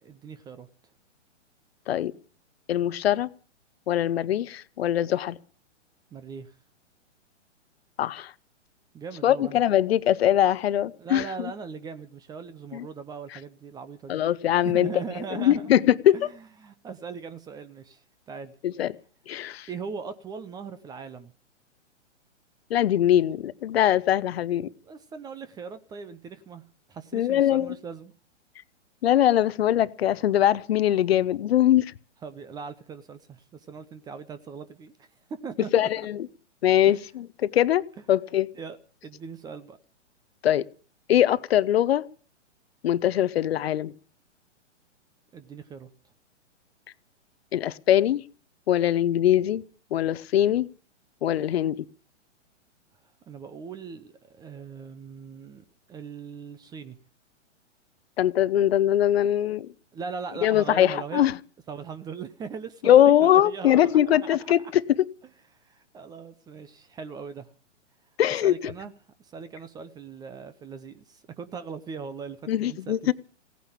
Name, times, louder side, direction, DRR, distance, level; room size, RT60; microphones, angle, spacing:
voice 1, 0.0-0.7 6.1-6.5 8.9-9.6 11.0-14.2 14.6-15.7 16.1-18.5 19.7-21.3 24.8-26.6 26.9-28.1 32.2-34.9 35.4-36.1 36.8-37.0 38.5-38.8 39.0-39.8 45.3-45.9 53.3-57.0 59.9-61.3 61.7-64.5 65.6-67.5 68.4-68.9 69.2-73.1, right 5 dB, 10° right, 0.6 m, -39 dB
voice 2, 2.7-3.3 3.9-5.4 8.0-8.3 9.2-11.2 12.7-12.8 14.1-14.9 15.3-16.3 18.6-18.9 19.3-19.7 22.7-24.7 27.1-27.7 29.0-31.8 35.7-36.3 36.6-37.8 38.1-38.5 40.4-40.7 41.1-42.0 42.8-43.9 47.5-48.2 48.7-49.6 49.9-50.7 51.2-51.8 58.2-59.7 60.4-61.3 62.8-65.1 68.2-68.7 72.5-73.1, left 11 dB, 55° left, 0.8 m, -22 dB
17.0 x 9.3 x 8.6 m
hypercardioid pair, 130°, 36 cm